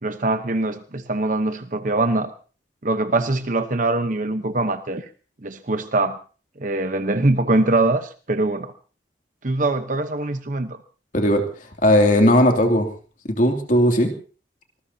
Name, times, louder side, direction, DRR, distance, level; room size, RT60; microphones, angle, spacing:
voice 1, 0.0-2.3 2.8-5.1 5.4-6.2 6.6-8.7 9.4-10.8, right 2 dB, 45° right, 8 dB, 1.0 m, -23 dB
voice 2, 11.1-11.4 11.8-12.9 13.4-14.1, left 1 dB, 45° left, 3 dB, 2.7 m, -17 dB
25.5 x 20.0 x 2.8 m, 0.38 s
head